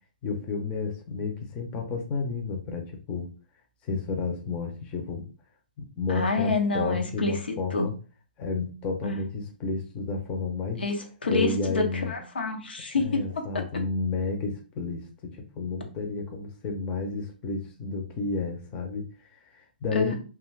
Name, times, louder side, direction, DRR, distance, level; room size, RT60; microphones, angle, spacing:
voice 1, 0.2-3.3 3.8-5.2 5.8-7.9 8.4-10.8 11.3-12.2 13.0-20.2, left 4 dB, 20° left, 2 dB, 0.5 m, -31 dB
voice 2, 6.1-7.9 9.0-9.2 10.8-11.0 11.2-13.6 19.9-20.2, left 3 dB, 85° left, 4 dB, 0.7 m, -28 dB
2.5 x 2.4 x 3.2 m, 0.36 s
hypercardioid pair, 145°, 5 cm